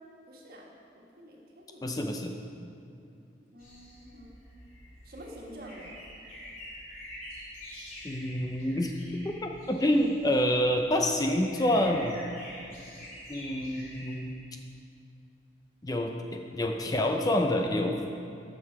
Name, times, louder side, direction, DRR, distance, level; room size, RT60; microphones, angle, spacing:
voice 1, 0.3-0.7 0.9-2.0 3.4-4.3 5.0-5.9, equal, 50° right, -2 dB, 1.6 m, -48 dB
voice 2, 1.8-2.3 8.0-8.9 9.2-12.2 13.3-14.4 15.8-18.0, left 1 dB, 20° left, 3 dB, 0.5 m, -27 dB
sound 1, 3.6-14.2, equal, 45° left, 2.8 m, -47 dB
13.0 x 6.6 x 4.7 m, 2.5 s
head